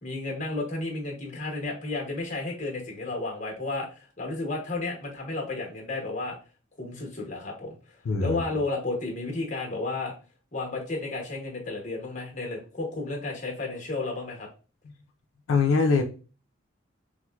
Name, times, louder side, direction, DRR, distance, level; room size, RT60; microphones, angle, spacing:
voice 1, 0.0-6.4 6.8-7.8 8.2-10.1 10.5-14.5, left 2 dB, 40° left, 1.0 m, -32 dB
voice 2, 8.0-8.4 15.5-16.0, left 4 dB, 90° left, 0.4 m, -22 dB
4.3 x 2.1 x 2.3 m
head